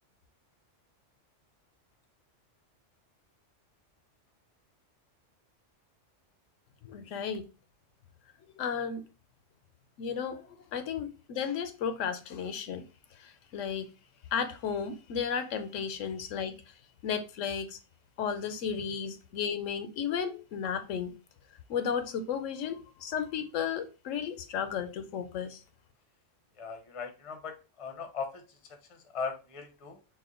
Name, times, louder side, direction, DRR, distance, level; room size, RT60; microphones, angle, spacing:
voice 1, 6.8-7.4 8.6-9.0 10.0-12.8 13.2-13.9 14.3-16.6 17.0-17.8 18.2-21.1 21.7-25.6, left 7 dB, 80° left, 1.0 m, -34 dB
voice 2, 26.6-28.3 29.1-30.0, left 5 dB, 35° left, 0.6 m, -38 dB
4.2 x 2.2 x 3.7 m
omnidirectional pair, 1.3 m